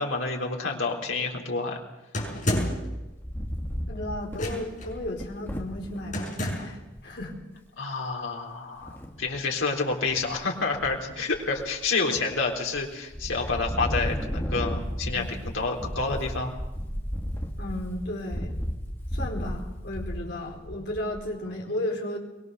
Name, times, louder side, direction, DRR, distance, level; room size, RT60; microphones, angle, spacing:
voice 1, 0.0-1.8 7.8-16.5, left 3 dB, 85° left, 0 dB, 3.8 m, -29 dB
sound 1, 2.1-2.9 4.3-4.9 6.1-6.8, left 1 dB, 40° left, 6.1 m, -29 dB
Wind, 3.0-6.1 6.7-6.8 7.0-7.3 8.8-9.4 9.9-10.4 10.7-11.9 12.4-12.8 13.1-21.3, equal, 10° left, 2.3 m, -34 dB
voice 2, 3.9-7.3 15.1-15.3 17.6-18.5 19.1-22.2, left 1 dB, 55° left, 0 dB, 4.5 m, -34 dB
23.5 x 21.5 x 6.8 m, 1.0 s
head